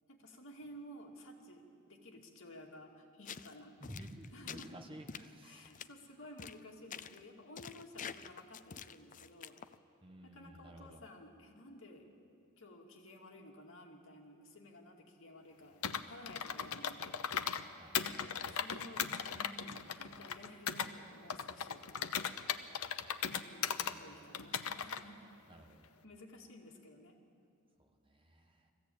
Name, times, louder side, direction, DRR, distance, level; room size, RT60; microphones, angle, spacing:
voice 1, 0.1-3.8 4.3-4.7 5.4-9.6 10.2-12.1 12.6-17.2 18.5-21.8 23.3-25.4 26.0-27.2, left 1 dB, 65° left, 0 dB, 2.4 m, -54 dB
sound 1, 3.2-3.5 3.8-4.7 5.1-5.3 5.6-5.8 6.4-6.6 6.9-7.2 7.6-9.7, left 7 dB, 35° left, 0.5 m, -47 dB
voice 2, 3.8-5.7 10.0-11.0 17.8-18.1 23.8-24.1 25.5-25.9 27.8-28.7, equal, 25° right, 4 dB, 1.4 m, -53 dB
Computer keyboard, 15.8-17.6 17.9-20.9 21.3-23.9 24.3-25.0, left 7 dB, 90° left, 0.8 m, -38 dB
21.5 x 15.0 x 8.8 m, 2.6 s
head